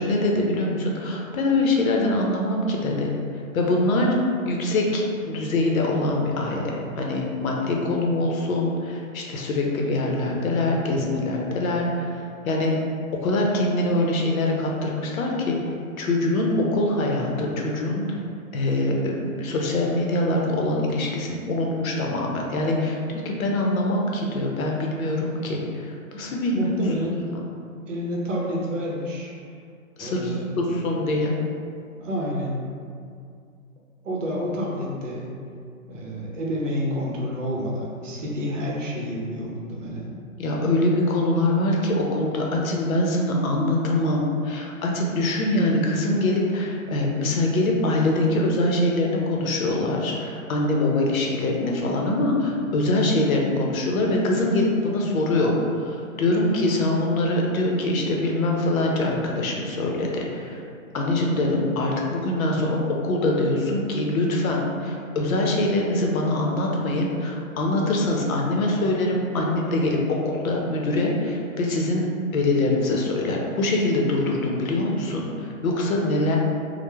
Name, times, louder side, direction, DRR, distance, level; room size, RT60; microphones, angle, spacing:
voice 1, 0.0-3.1 3.5-4.2 4.4-12.2 12.5-12.7 13.1-15.6 16.0-18.2 18.5-27.0 30.0-31.3 40.4-60.6 60.9-72.1 72.3-76.4, left 2 dB, 80° left, -1 dB, 0.6 m, -24 dB
voice 2, 26.5-27.3 27.9-29.3 30.0-30.5 32.0-32.6 34.0-35.3 35.9-40.2, equal, 60° right, -3 dB, 0.7 m, -29 dB
3.0 x 2.1 x 2.2 m, 2.3 s
hypercardioid pair, 170°, 41 cm